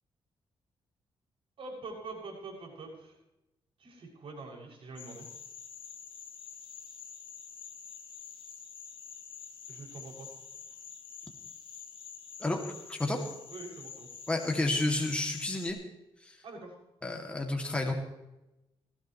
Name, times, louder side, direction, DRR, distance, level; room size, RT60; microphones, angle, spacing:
voice 1, 1.6-3.1 3.8-5.3 9.7-10.3 13.1-13.2 13.5-14.1 16.4-16.7, right 3 dB, 65° right, -1 dB, 6.9 m, -44 dB
sound 1, 5.0-15.7, left 7 dB, 55° left, 2.7 m, -47 dB
voice 2, 14.3-15.8 16.2-16.4 17.0-17.9, left 2 dB, 10° left, 1 dB, 2.5 m, -30 dB
19.5 x 16.0 x 3.2 m, 0.94 s
cardioid pair, 115°, 10 cm